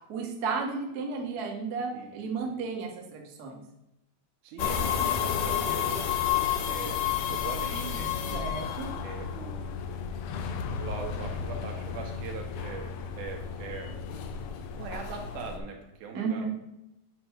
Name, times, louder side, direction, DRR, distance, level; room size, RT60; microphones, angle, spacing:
voice 1, 0.1-3.6 8.3-8.9 16.1-16.4, right 4 dB, 55° right, 1 dB, 1.0 m, -33 dB
voice 2, 1.9-2.6 4.4-6.1 6.6-7.0 7.3-8.4 9.0-9.8 10.8-14.0 14.8-16.5, right 5 dB, 85° right, 2 dB, 2.6 m, -41 dB
sound 1, 4.6-15.6, left 8 dB, 75° left, 1.7 m, -31 dB
7.7 x 4.6 x 4.4 m, 0.89 s
omnidirectional pair, 3.5 m